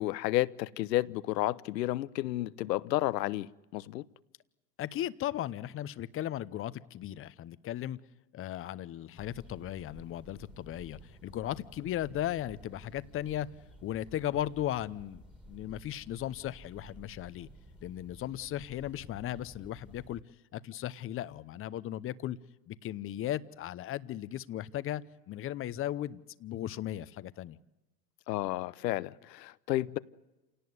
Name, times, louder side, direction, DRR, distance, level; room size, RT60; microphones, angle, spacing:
voice 1, 0.0-4.0 28.3-30.0, left 16 dB, 80° left, 1.0 m, -31 dB
voice 2, 4.8-8.0 8.3-13.5 13.8-15.2 15.5-17.5 17.8-20.2 20.5-22.4 22.7-27.6, left 12 dB, 25° left, 0.8 m, -36 dB
sound 1, 9.2-20.2, equal, ahead, 2.1 m, -54 dB
28.0 x 18.0 x 9.6 m
supercardioid pair, 130°, 49 cm